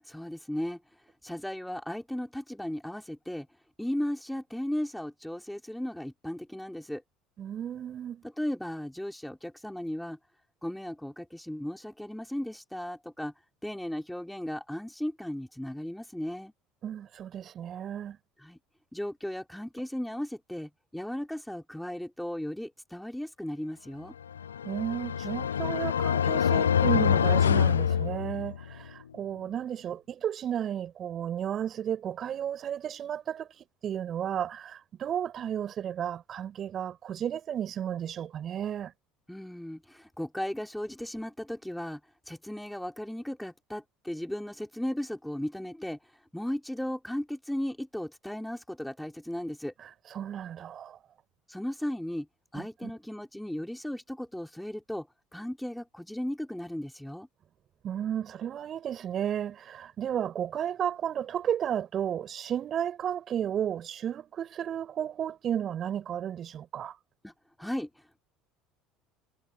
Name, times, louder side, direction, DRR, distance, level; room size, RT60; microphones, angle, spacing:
voice 1, 0.0-0.8 1.2-3.5 3.8-7.0 8.4-10.2 10.6-13.3 13.6-16.5 18.4-18.6 18.9-24.1 39.3-42.0 42.3-49.7 51.5-52.3 52.5-57.3 67.2-67.3 67.6-68.2, left 1 dB, 5° left, 4.5 m, -36 dB
voice 2, 7.4-8.2 16.8-18.2 24.6-38.9 50.1-51.0 52.5-52.9 57.8-66.9, right 9 dB, 45° right, 7.6 m, -33 dB
sound 1, 24.3-28.7, left 8 dB, 85° left, 0.4 m, -25 dB
hypercardioid pair, 65°, 0 cm